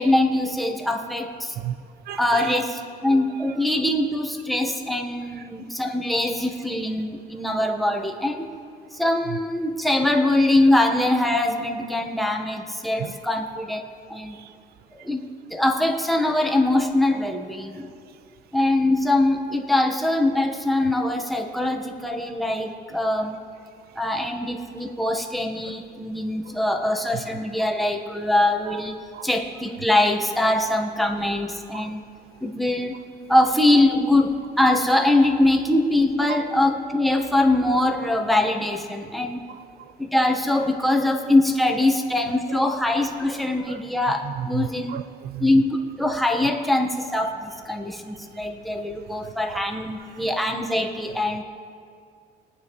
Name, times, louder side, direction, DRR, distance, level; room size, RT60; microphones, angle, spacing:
voice 1, 0.0-1.5 2.2-8.5 8.9-14.4 14.9-15.2 15.5-17.9 18.5-23.4 23.9-32.0 32.4-33.0 33.3-39.4 40.0-45.0 45.4-51.4, left 1 dB, ahead, 4 dB, 1.3 m, -23 dB
voice 2, 2.1-2.7 3.3-3.6 5.3-5.5 9.3-9.4 13.0-13.2 14.3-14.5 25.6-25.7 26.5-26.6 27.1-27.2 27.6-27.7 29.1-29.3 30.5-30.6 31.7-31.9 32.9-33.0 36.3-36.4 39.5-39.9 42.5-42.6 43.7-43.9 44.2-45.6 48.7-48.8 49.5-49.6 50.0-50.3, right 10 dB, 65° right, 15 dB, 0.4 m, -35 dB
23.5 x 9.5 x 3.2 m, 2.3 s
cardioid pair, 110°, 17 cm